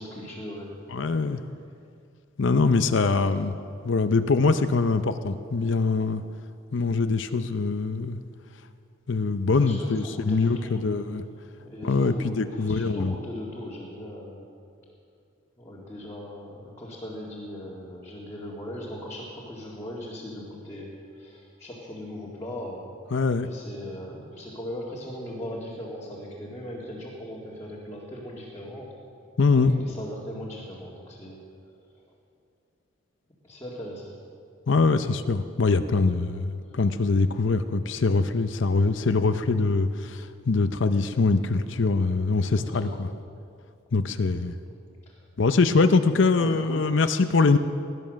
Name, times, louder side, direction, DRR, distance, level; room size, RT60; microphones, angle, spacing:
voice 1, 0.0-0.8 1.1-1.3 9.5-10.8 11.6-14.5 15.6-22.9 23.4-28.9 29.5-31.4 33.4-34.1 42.5-43.0 46.3-47.3, left 1 dB, 15° left, -6 dB, 2.1 m, -39 dB
voice 2, 0.9-1.4 2.4-3.5 3.8-6.2 6.7-8.2 9.1-11.2 11.8-13.2 23.1-23.5 29.4-29.7 34.7-43.1 43.9-44.5 45.4-47.6, left 3 dB, 65° left, 10 dB, 0.6 m, -23 dB
18.5 x 11.0 x 6.4 m, 2.4 s
head